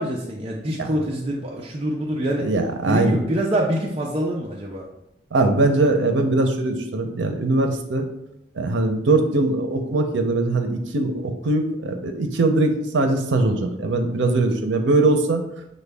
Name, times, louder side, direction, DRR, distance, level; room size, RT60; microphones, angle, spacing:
voice 1, 0.0-2.5 2.9-4.9 14.3-14.4, right 1 dB, 30° right, -2 dB, 0.4 m, -25 dB
voice 2, 2.4-3.2 5.3-8.0 8.6-15.4, right 2 dB, 90° right, 5 dB, 0.6 m, -21 dB
6.2 x 2.2 x 3.4 m, 0.82 s
head